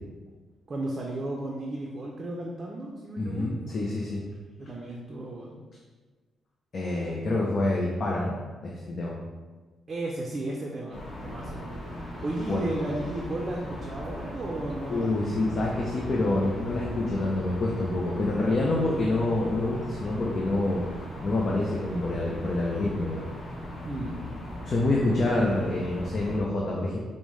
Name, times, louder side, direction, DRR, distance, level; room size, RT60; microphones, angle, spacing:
voice 1, 0.7-3.5 4.6-5.6 7.7-7.8 9.9-11.6 12.2-15.6 23.8-24.2, right 1 dB, 35° right, -2 dB, 0.5 m, -34 dB
voice 2, 3.2-4.2 6.7-9.2 12.5-12.7 14.9-20.8 21.2-23.2 24.7-27.0, left 2 dB, 45° left, -3 dB, 0.5 m, -27 dB
sound 1, 10.9-26.4, left 1 dB, 25° left, 1.0 m, -38 dB
5.1 x 2.1 x 3.1 m, 1.3 s
cardioid pair, 105°, 0 cm